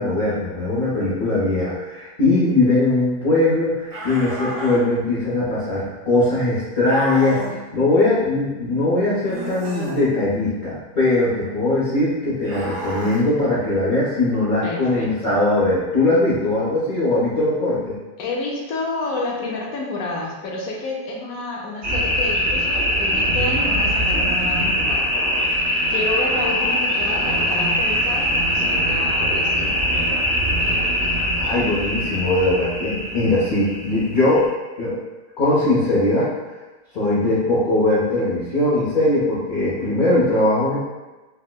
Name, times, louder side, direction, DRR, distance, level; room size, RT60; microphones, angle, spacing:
voice 1, 0.0-17.9 31.3-35.0 35.4-36.3 36.9-40.8, left 2 dB, 45° left, -10 dB, 0.7 m, -20 dB
sound 1, 3.9-4.8 6.9-7.6 9.2-10.1 12.4-13.2, right 1 dB, 80° right, 0.4 m, -31 dB
voice 2, 14.6-15.3 18.2-25.1 25.9-30.2 32.8-33.3, left 3 dB, 75° left, -2 dB, 1.0 m, -30 dB
sound 2, 21.8-34.4, equal, 50° right, 1.2 m, -22 dB
4.4 x 2.1 x 2.2 m, 1.2 s
omnidirectional pair, 1.6 m